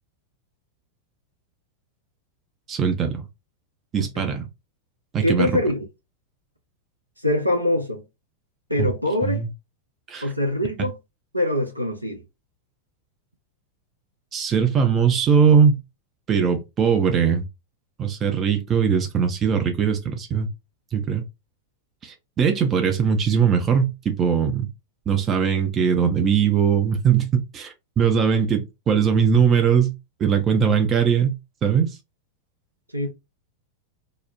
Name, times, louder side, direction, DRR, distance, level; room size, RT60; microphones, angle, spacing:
voice 1, 2.7-3.3 3.9-4.5 5.1-5.5 8.8-8.9 9.2-9.5 10.1-10.3 14.3-15.8 16.3-17.4 18.0-20.5 20.9-21.2 22.0-24.7 25.1-29.9 30.2-32.0, right 7 dB, 25° right, 0.5 m, -20 dB
voice 2, 5.2-5.9 7.2-8.0 8.7-9.4 10.2-11.0 11.3-12.2 32.9-33.1, left 1 dB, 90° right, 0.5 m, -23 dB
2.9 x 2.0 x 2.4 m
figure-of-eight pair, 90°, 0 cm